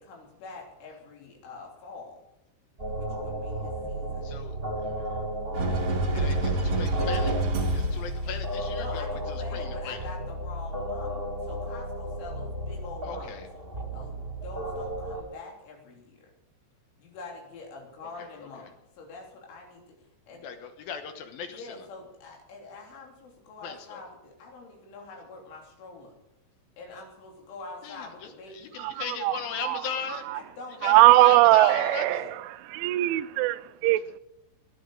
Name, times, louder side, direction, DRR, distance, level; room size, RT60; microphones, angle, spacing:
voice 1, 0.0-2.2 2.9-4.4 8.7-13.5 13.9-16.3 17.0-20.4 21.5-26.2 26.8-28.8 30.3-32.3, left 3 dB, 90° left, 0 dB, 5.8 m, -45 dB
sound 1, 2.8-15.2, right 1 dB, 15° right, 2.1 m, -34 dB
voice 2, 4.2-4.5 6.1-7.4 7.7-10.0 13.0-13.5 18.2-18.5 20.4-21.8 23.6-24.0 27.8-30.2 30.8-32.2, left 7 dB, 70° left, 7 dB, 2.4 m, -38 dB
sound 2, 5.5-8.3, right 2 dB, 40° right, 2.2 m, -27 dB
voice 3, 29.2-29.8 30.8-32.2 32.7-34.2, right 17 dB, 90° right, 15 dB, 3.1 m, -20 dB
20.0 x 10.5 x 5.0 m, 0.88 s
omnidirectional pair, 5.3 m